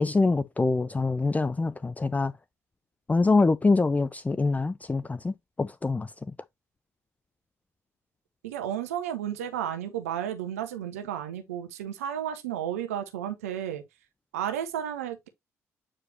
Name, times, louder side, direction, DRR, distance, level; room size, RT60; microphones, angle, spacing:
voice 1, 0.0-2.3 3.1-6.1, left 3 dB, 20° left, 0.5 m, -25 dB
voice 2, 8.4-13.8 14.3-15.3, right 10 dB, 85° right, 0.9 m, -32 dB
8.6 x 4.8 x 2.8 m
hypercardioid pair, 45°, 8 cm